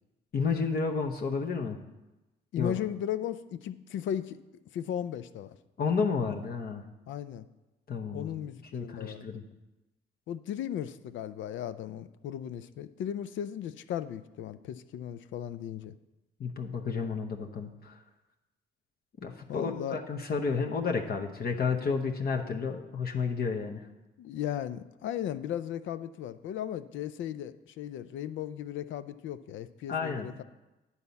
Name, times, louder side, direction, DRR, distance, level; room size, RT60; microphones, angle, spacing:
voice 1, 0.3-1.8 2.6-2.7 5.8-6.8 7.9-8.3 8.7-9.4 16.4-17.9 19.2-23.8 29.9-30.3, left 5 dB, 50° left, 2 dB, 0.9 m, -31 dB
voice 2, 2.5-4.4 4.7-5.5 7.1-7.5 8.1-9.3 10.3-15.9 19.5-20.0 24.2-30.4, left 10 dB, 75° left, 13 dB, 0.5 m, -36 dB
9.6 x 4.2 x 7.0 m, 1.0 s
cardioid pair, 90°, 20 cm